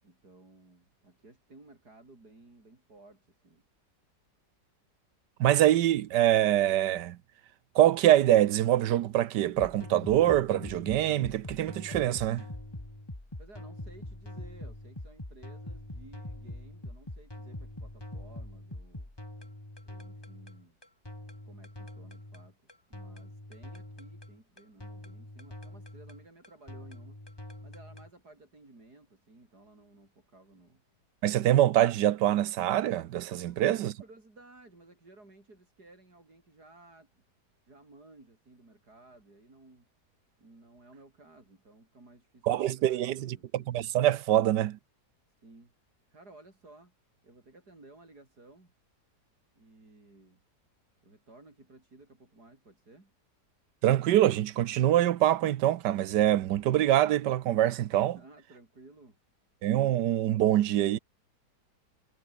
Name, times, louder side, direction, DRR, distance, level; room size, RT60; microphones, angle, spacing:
voice 1, 0.0-3.6 13.4-19.1 19.8-20.8 21.4-22.6 22.9-27.2 27.6-30.8 33.5-37.2 37.7-39.9 40.4-43.7 45.4-45.7 46.1-46.9 47.2-48.7 49.5-50.4 51.0-53.1 58.1-59.2, right 2 dB, 65° right, 6.4 m, -56 dB
voice 2, 5.4-7.2 7.7-12.4 31.2-33.9 42.5-44.8 53.8-58.2 59.6-61.0, right 12 dB, 85° right, 1.4 m, -24 dB
sound 1, 9.6-28.1, left 1 dB, 15° left, 2.8 m, -44 dB
omnidirectional pair, 1.8 m